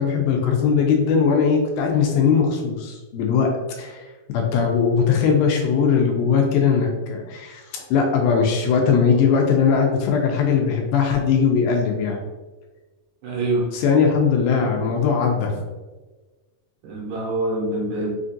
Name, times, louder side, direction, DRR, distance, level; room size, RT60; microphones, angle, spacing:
voice 1, 0.0-3.5 3.8-4.0 4.3-12.2 13.7-15.6, left 6 dB, 80° left, 1 dB, 2.3 m, -20 dB
voice 2, 13.2-13.7 16.8-18.1, right 2 dB, 80° right, -2 dB, 2.3 m, -25 dB
5.7 x 2.4 x 2.6 m, 1.2 s
omnidirectional pair, 4.4 m